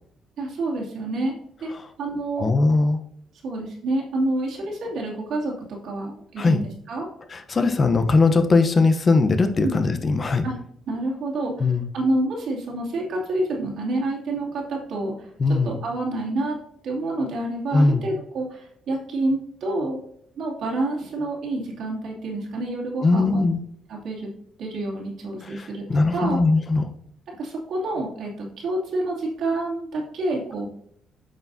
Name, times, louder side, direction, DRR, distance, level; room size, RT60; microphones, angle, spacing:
voice 1, 0.4-1.3 1.6-1.7 2.0-2.5 3.4-5.5 5.8-7.1 9.6-9.8 10.4-10.5 10.9-16.6 16.8-20.0 20.4-23.4 23.9-24.3 24.6-25.8 26.1-26.4 27.4-30.7, right 2 dB, 75° right, -3 dB, 2.6 m, -28 dB
voice 2, 2.4-3.0 6.4-6.6 7.3-10.4 11.6-11.8 15.4-15.7 17.7-18.0 23.0-23.6 25.4-26.9, left 3 dB, 35° left, 8 dB, 0.8 m, -20 dB
8.7 x 5.8 x 2.7 m, 0.69 s
cardioid pair, 90°, 0 cm